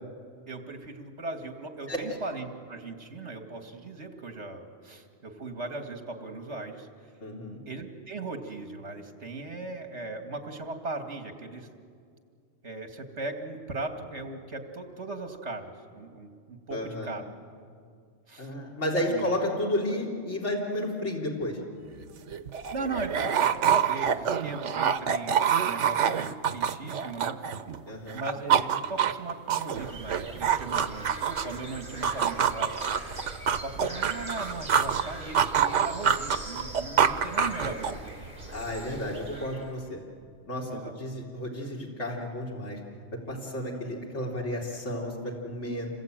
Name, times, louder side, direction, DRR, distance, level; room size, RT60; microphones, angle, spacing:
voice 1, 0.5-6.9 7.7-11.7 12.6-17.2 18.3-18.5 19.1-19.3 22.7-27.4 28.1-32.8 33.0-33.3 33.6-38.2 40.7-41.0 43.3-43.4, right 3 dB, 70° right, 5 dB, 2.5 m, -38 dB
voice 2, 7.2-7.6 16.7-17.1 18.4-21.6 27.9-28.2 38.5-40.0 40.5-42.8 43.3-45.9, left 1 dB, 80° left, -2 dB, 3.4 m, -32 dB
sound 1, 21.9-22.0 22.3-27.8 28.1-31.6 32.0-35.0 35.3-38.1, right 8 dB, 85° right, 1.2 m, -26 dB
sound 2, 29.7-39.7, right 2 dB, 45° right, 4.4 m, -42 dB
27.5 x 21.5 x 9.0 m, 2.2 s
omnidirectional pair, 1.2 m